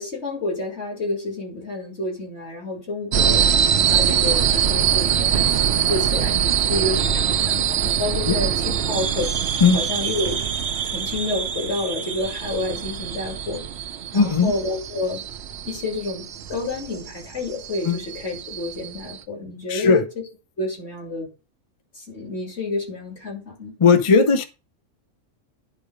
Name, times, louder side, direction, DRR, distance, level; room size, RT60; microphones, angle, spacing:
voice 1, 0.0-9.3 9.7-10.5 10.8-13.6 14.1-15.2 15.7-20.1 20.6-21.3 21.9-23.8, left 2 dB, 55° left, 3.2 m, -29 dB
sound 1, 3.1-19.2, right 8 dB, 60° right, 0.9 m, -23 dB
voice 2, 14.1-14.5 17.8-18.0 19.7-20.0 23.8-24.4, left 5 dB, 35° left, 0.6 m, -17 dB
10.0 x 3.8 x 5.0 m
omnidirectional pair, 1.3 m